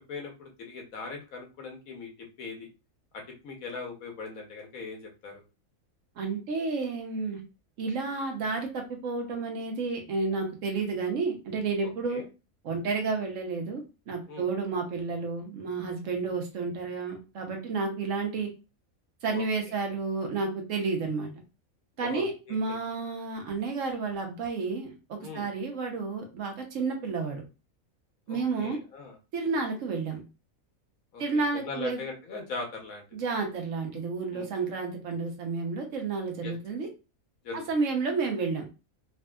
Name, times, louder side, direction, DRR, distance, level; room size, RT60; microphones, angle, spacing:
voice 1, 0.1-2.1 2.4-2.7 3.1-5.4 11.8-12.2 14.3-14.5 19.3-19.4 22.0-22.8 25.2-25.5 28.3-29.2 31.1-33.0 34.3-34.5 36.4-36.5 37.4-37.6, left 4 dB, 80° left, 2 dB, 1.3 m, -40 dB
voice 2, 6.2-7.4 7.8-12.2 12.6-18.5 19.2-21.3 22.0-27.4 28.3-28.8 29.3-30.2 31.2-32.0 33.1-36.9 37.7-38.6, right 4 dB, 70° right, 3 dB, 1.1 m, -31 dB
3.4 x 2.7 x 2.2 m, 0.30 s
omnidirectional pair, 1.4 m